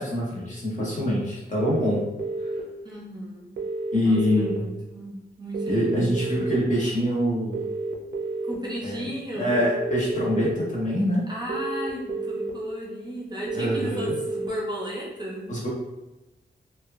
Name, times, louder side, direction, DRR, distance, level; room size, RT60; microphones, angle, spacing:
voice 1, 0.0-2.0 3.9-4.6 5.7-7.7 8.8-9.0 9.3-11.2 13.5-14.1 15.5-15.7, equal, 45° left, -5 dB, 0.8 m, -25 dB
sound 1, 1.6-2.6 3.6-4.6 5.5-6.6 7.5-8.5 9.5-10.5 11.5-12.5 13.5-14.5, right 3 dB, 80° right, 0.4 m, -30 dB
voice 2, 2.8-3.5 4.0-6.2 8.4-9.7 11.3-15.5, equal, 25° right, -4 dB, 0.6 m, -35 dB
2.9 x 2.2 x 2.4 m, 1.0 s
wide cardioid pair, 140°, 19 cm